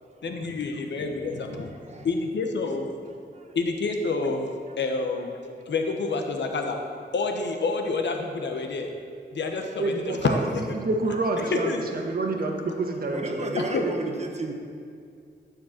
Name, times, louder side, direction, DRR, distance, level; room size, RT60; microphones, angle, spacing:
voice 1, 0.2-1.7 2.0-2.9 3.5-4.5 4.8-5.4 5.7-6.8 7.1-8.9 9.3-10.7 11.7-11.9 13.6-13.8, left 3 dB, 75° left, 4 dB, 1.0 m, -28 dB
voice 2, 9.8-13.9, right 2 dB, 55° right, 2 dB, 1.3 m, -28 dB
voice 3, 13.1-14.5, right 2 dB, 35° right, 3 dB, 1.1 m, -32 dB
12.0 x 5.2 x 7.2 m, 2.3 s
wide cardioid pair, 165°, 19 cm